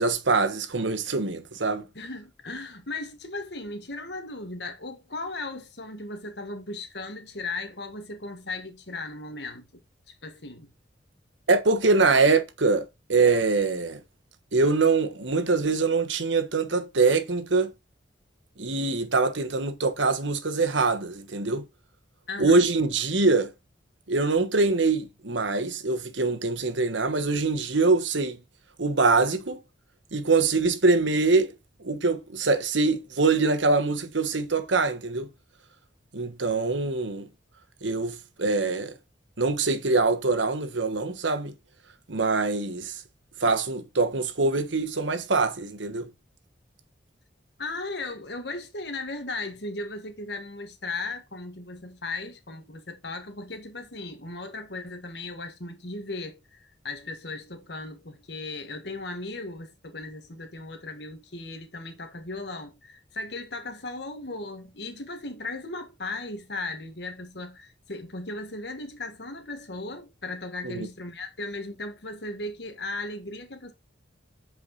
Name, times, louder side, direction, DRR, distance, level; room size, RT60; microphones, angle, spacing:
voice 1, 0.0-1.9 11.5-14.0 14.5-17.7 18.6-21.7 22.4-23.5 24.1-28.4 28.8-29.6 30.1-31.5 31.8-35.3 36.1-37.3 37.8-38.9 39.4-41.5 42.1-43.0 43.4-46.1 70.6-70.9, right 3 dB, 80° right, 1.3 m, -24 dB
voice 2, 1.9-9.7 10.2-10.7 22.3-22.7 47.6-73.7, left 2 dB, 65° left, 1.6 m, -37 dB
8.5 x 5.0 x 4.0 m
head